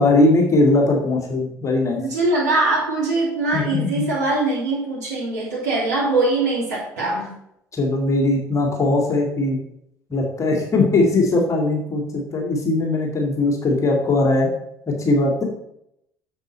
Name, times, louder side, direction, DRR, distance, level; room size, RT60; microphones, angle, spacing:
voice 1, 0.0-2.0 3.5-4.0 7.7-9.6 10.1-14.5 14.9-15.4, left 2 dB, 35° left, 0 dB, 2.3 m, -19 dB
voice 2, 1.9-7.3, right 2 dB, 80° right, -6 dB, 3.0 m, -22 dB
7.8 x 7.3 x 4.3 m, 0.76 s
hypercardioid pair, 55°, 9 cm